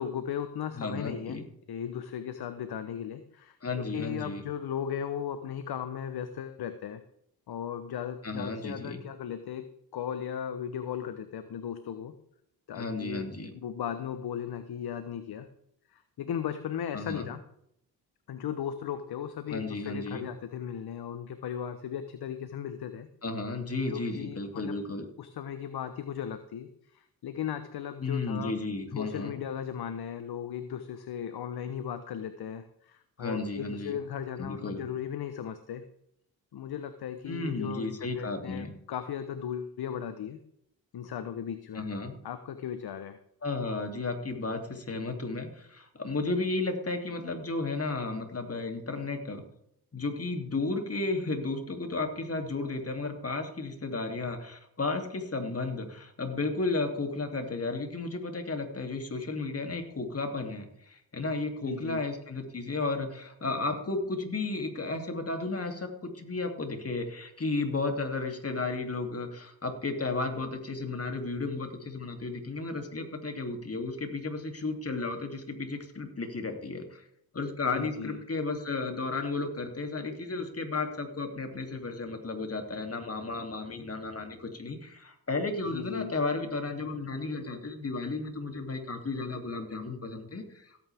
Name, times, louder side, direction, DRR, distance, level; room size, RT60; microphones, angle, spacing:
voice 1, 0.0-7.0 7.5-12.1 12.7-15.5 15.9-17.4 18.3-23.1 23.9-24.7 25.2-28.5 29.0-35.8 36.5-40.4 40.9-41.9 42.2-43.2 61.6-62.0 77.7-78.2 85.7-86.1, left 9 dB, 60° left, 10 dB, 1.1 m, -37 dB
voice 2, 0.7-1.4 3.6-4.4 8.2-9.0 12.7-13.5 16.9-17.3 19.5-20.3 23.2-25.1 28.0-29.4 33.2-34.0 34.4-34.8 37.3-38.7 41.7-42.1 43.4-49.4 49.9-77.1 77.3-90.8, left 3 dB, 35° left, 4 dB, 3.0 m, -33 dB
16.5 x 9.2 x 3.6 m, 0.74 s
supercardioid pair, 55°, 42 cm